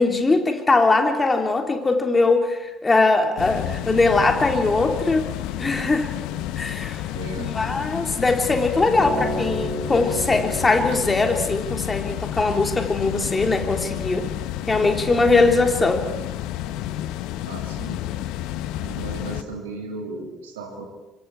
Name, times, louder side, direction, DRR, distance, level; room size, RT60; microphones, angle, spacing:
voice 1, 0.0-5.3 5.6-6.1 6.6-7.0 7.4-14.3 14.7-16.1, left 3 dB, 20° left, 3 dB, 3.5 m, -21 dB
sound 1, 3.4-19.4, left 13 dB, 65° left, 1.0 m, -30 dB
voice 2, 7.1-7.5 17.5-18.1 18.8-20.9, right 3 dB, 75° right, 2 dB, 3.1 m, -35 dB
Acoustic guitar, 9.0-13.3 14.1-14.2, right 1 dB, 30° right, 6.1 m, -33 dB
25.5 x 24.5 x 4.9 m, 1.1 s
figure-of-eight pair, 55°, 0 cm